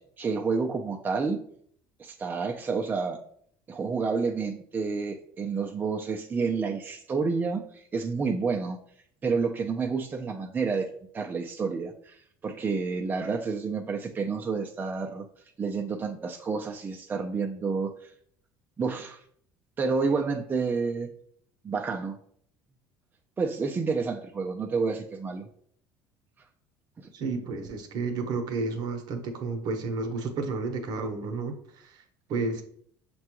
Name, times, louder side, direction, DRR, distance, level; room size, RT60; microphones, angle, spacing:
voice 1, 0.2-1.4 2.0-3.2 3.7-8.8 9.2-10.9 11.1-15.3 15.6-18.1 18.8-19.2 19.8-21.1 21.6-22.2 23.4-25.4 27.0-27.1, right 4 dB, 25° right, 3 dB, 0.4 m, -29 dB
voice 2, 27.1-32.0 32.3-32.6, right 3 dB, 55° right, 6 dB, 0.8 m, -31 dB
5.9 x 2.2 x 2.9 m, 0.62 s
supercardioid pair, 100°, 8 cm